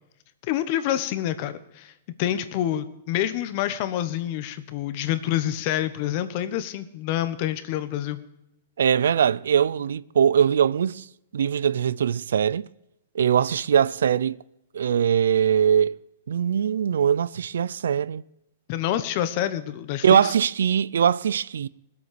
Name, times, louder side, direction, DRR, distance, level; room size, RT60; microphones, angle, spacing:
voice 1, 0.4-1.9 2.2-8.2 18.7-20.3, left 12 dB, 40° left, 1.1 m, -27 dB
voice 2, 8.8-11.1 11.3-12.7 13.1-14.4 14.7-15.9 16.3-18.2 20.0-21.7, right 8 dB, 85° right, 0.4 m, -21 dB
19.0 x 8.2 x 6.8 m
hypercardioid pair, 155°, 0 cm